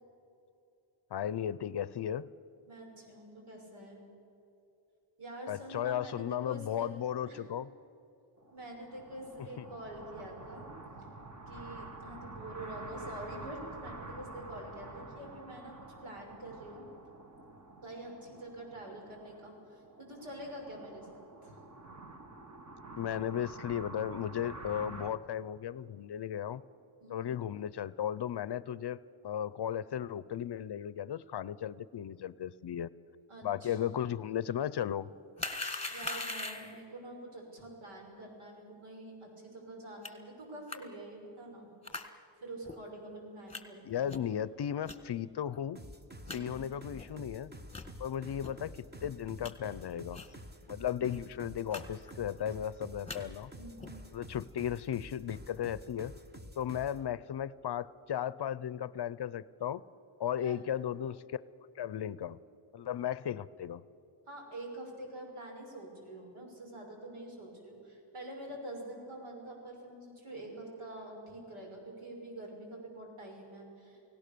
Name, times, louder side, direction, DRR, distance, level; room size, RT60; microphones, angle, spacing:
voice 1, 1.1-2.3 5.5-7.7 9.6-9.7 23.0-26.6 27.1-32.9 33.4-35.1 43.8-45.8 46.3-47.5 48.0-50.2 50.7-53.5 54.1-56.1 56.6-59.8 60.2-61.4 61.8-62.4 62.7-63.8, left 10 dB, 55° left, 19 dB, 0.6 m, -35 dB
voice 2, 2.7-4.0 5.2-6.9 7.3-7.5 8.5-10.7 11.0-11.1 11.5-16.9 17.8-21.6 27.0-27.4 33.3-33.9 35.9-41.7 42.4-44.1 46.3-46.6 53.6-54.0 60.4-60.6 64.3-74.0, right 1 dB, 80° right, 1 dB, 6.1 m, -46 dB
sound 1, 8.4-25.1, right 2 dB, 35° right, 1.7 m, -48 dB
sound 2, 35.4-36.8 40.0-40.1 40.7-40.8 41.8-42.1 42.6-42.7 43.5-43.6 44.1-44.3 44.8-45.0 45.5-45.6 45.9-46.0 46.3-46.4 46.9-47.1 47.7-47.9 48.4-48.5 49.0-49.5 50.1-50.3 50.6-50.7 51.0-51.2 51.7-51.8 52.1-52.5 52.9-53.2 53.8-54.0, left 3 dB, 10° left, 1.6 m, -40 dB
sound 3, 45.8-57.0, equal, 20° right, 1.2 m, -49 dB
29.5 x 18.0 x 6.8 m, 2.8 s
wide cardioid pair, 135°, 49 cm